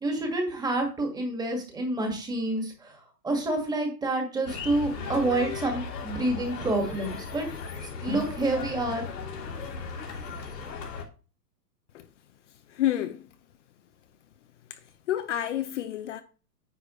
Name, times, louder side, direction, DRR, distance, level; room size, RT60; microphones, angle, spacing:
voice 1, 0.0-7.5 8.0-9.1, right 2 dB, 10° right, 1.8 m, -28 dB
sound 1, 4.4-11.0, left 5 dB, 85° left, 3.3 m, -37 dB
voice 2, 12.7-13.2 15.1-16.2, left 12 dB, 45° left, 0.8 m, -28 dB
9.6 x 6.6 x 3.1 m
hypercardioid pair, 145°, 49 cm